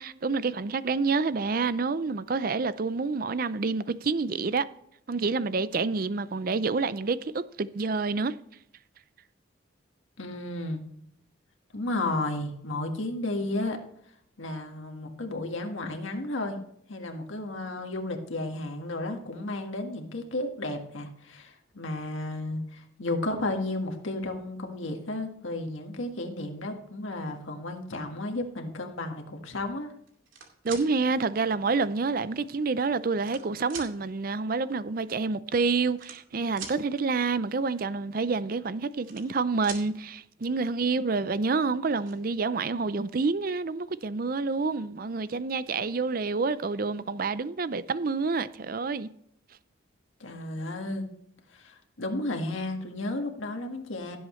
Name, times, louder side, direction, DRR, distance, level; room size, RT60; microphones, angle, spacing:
voice 1, 0.0-4.6 5.1-8.3 30.6-49.1, right 4 dB, 45° right, 0.5 m, -28 dB
voice 2, 10.2-10.8 11.7-13.8 14.4-16.6 16.9-29.9 50.2-51.1 51.5-54.2, left 2 dB, 80° left, 1.6 m, -33 dB
sound 1, 30.1-30.9 31.8-31.9 32.8-33.4 33.7-33.9 35.1-35.2 35.3-35.5 35.9-36.8 38.7-39.4 39.6-39.9 41.3-41.4 41.7-42.1, right 6 dB, 75° right, 2.5 m, -42 dB
16.5 x 7.8 x 3.2 m
head